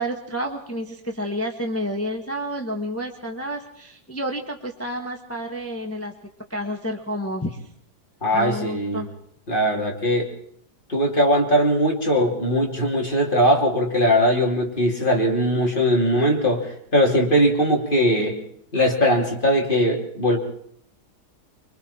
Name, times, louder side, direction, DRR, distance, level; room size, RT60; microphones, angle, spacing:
voice 1, 0.0-6.1 6.5-7.6 8.3-9.1, equal, 10° left, 3 dB, 1.4 m, -29 dB
voice 2, 8.2-9.0 9.5-10.3 10.9-18.3 18.7-20.4, equal, 30° left, 0 dB, 3.4 m, -20 dB
25.0 x 24.0 x 4.4 m, 0.68 s
omnidirectional pair, 1.8 m